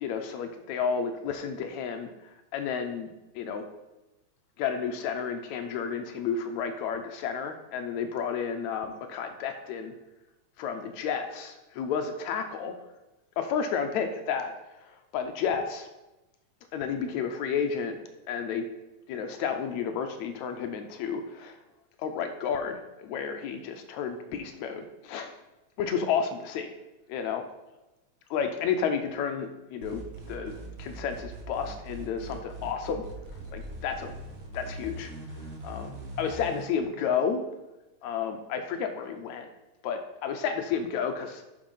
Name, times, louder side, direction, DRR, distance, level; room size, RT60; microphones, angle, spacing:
voice 1, 0.0-2.1 2.5-3.6 4.6-9.9 10.6-12.8 13.4-14.5 15.1-15.9 16.7-18.0 18.3-18.7 19.1-21.6 22.0-25.3 25.8-26.7 27.1-27.4 28.3-33.0 33.5-34.1 34.5-35.1 35.6-37.4 38.0-39.5 39.8-41.4, left 6 dB, 75° left, 6 dB, 1.8 m, -31 dB
sound 1, 29.8-36.6, right 1 dB, 45° right, 1.4 m, -41 dB
10.0 x 5.3 x 5.4 m, 1.0 s
omnidirectional pair, 3.6 m